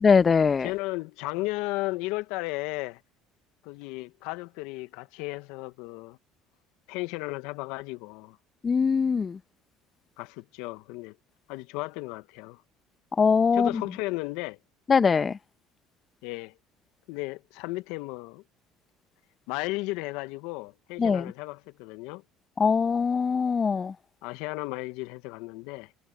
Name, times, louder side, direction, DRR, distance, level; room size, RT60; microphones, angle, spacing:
voice 1, 0.0-0.7 8.6-9.4 13.2-13.8 14.9-15.4 21.0-21.3 22.6-23.9, left 5 dB, 35° left, 1.3 m, -22 dB
voice 2, 0.6-3.0 3.6-6.2 6.9-8.4 10.2-11.1 11.5-12.6 13.5-14.6 16.2-16.5 17.1-18.4 19.5-22.2 24.2-25.9, left 22 dB, 75° left, 1.4 m, -34 dB
hypercardioid pair, 70°, 0 cm